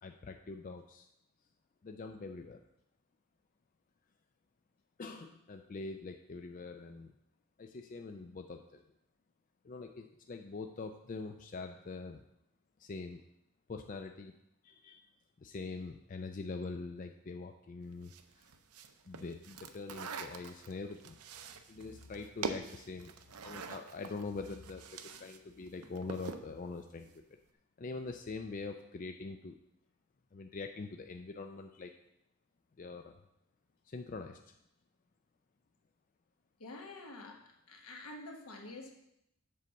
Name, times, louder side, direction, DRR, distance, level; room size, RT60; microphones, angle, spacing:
voice 1, 0.0-1.1 1.8-2.6 5.0-7.1 7.6-8.8 9.6-12.2 12.8-13.2 13.7-14.3 14.6-15.1 15.4-18.5 19.1-21.2 21.7-23.2 23.4-27.1 27.8-29.5 30.3-31.9 32.8-33.2 33.9-34.5, left 3 dB, 35° left, 5 dB, 0.3 m, -44 dB
sound 1, 18.0-25.4 25.7-26.5, right 5 dB, 90° right, 0.6 m, -44 dB
voice 2, 36.6-38.9, left 2 dB, 85° left, 2 dB, 1.2 m, -48 dB
7.5 x 4.2 x 6.4 m, 0.80 s
head